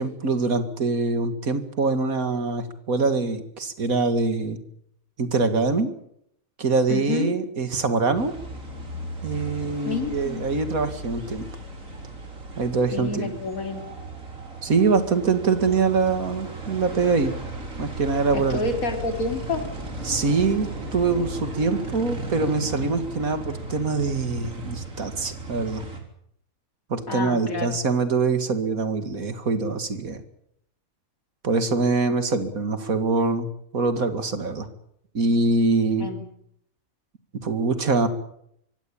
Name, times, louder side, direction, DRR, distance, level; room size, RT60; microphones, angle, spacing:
voice 1, 0.0-4.6 5.2-5.9 6.6-8.3 9.2-11.5 12.5-13.3 14.6-17.3 17.8-18.6 20.0-25.8 26.9-30.2 31.4-34.7 35.1-36.1 37.4-38.1, right 4 dB, 85° right, 10 dB, 2.6 m, -24 dB
voice 2, 6.9-7.3 9.9-10.4 12.9-13.8 18.3-19.6 27.1-27.8 36.0-36.2, left 3 dB, 80° left, 5 dB, 3.7 m, -28 dB
sound 1, 8.1-26.0, right 2 dB, 65° right, 4.2 m, -36 dB
24.5 x 16.0 x 8.8 m, 0.73 s
omnidirectional pair, 1.4 m